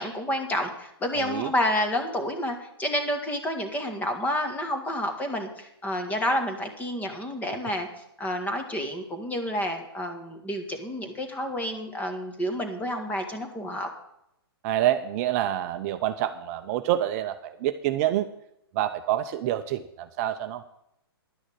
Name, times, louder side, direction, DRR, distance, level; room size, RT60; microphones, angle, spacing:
voice 1, 0.0-7.9 8.2-13.9, equal, 10° left, 6 dB, 1.8 m, -29 dB
voice 2, 1.2-1.5 14.6-18.3 18.7-20.6, right 12 dB, 40° right, 8 dB, 0.7 m, -27 dB
11.0 x 6.3 x 8.7 m, 0.80 s
hypercardioid pair, 125°, 13 cm